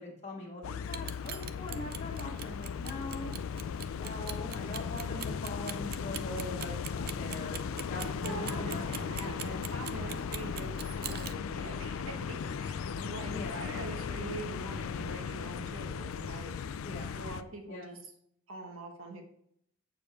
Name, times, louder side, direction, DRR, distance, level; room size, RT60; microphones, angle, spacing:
voice 1, 0.0-3.3 4.0-9.5 9.9-10.2 12.9-13.8 16.8-17.2 17.7-17.9, left 1 dB, 35° left, -3 dB, 1.1 m, -42 dB
sound 1, 0.6-17.4, left 6 dB, 70° left, 0.4 m, -37 dB
Clock, 0.8-11.3, right 10 dB, 45° right, 0.5 m, -41 dB
voice 2, 8.2-16.5 17.1-18.1 18.5-19.2, right 2 dB, 75° right, 3 dB, 1.3 m, -44 dB
8.4 x 6.9 x 3.3 m, 0.71 s
head